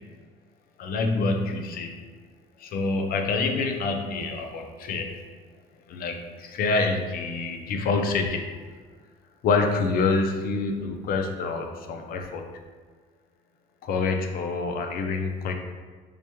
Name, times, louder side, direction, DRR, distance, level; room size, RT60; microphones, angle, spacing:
voice 1, 0.8-1.9 2.6-5.2 5.9-8.5 9.4-12.4 13.8-15.5, left 3 dB, 60° left, 4 dB, 0.5 m, -26 dB
4.7 x 2.2 x 2.9 m, 1.5 s
cardioid pair, 110°, 17 cm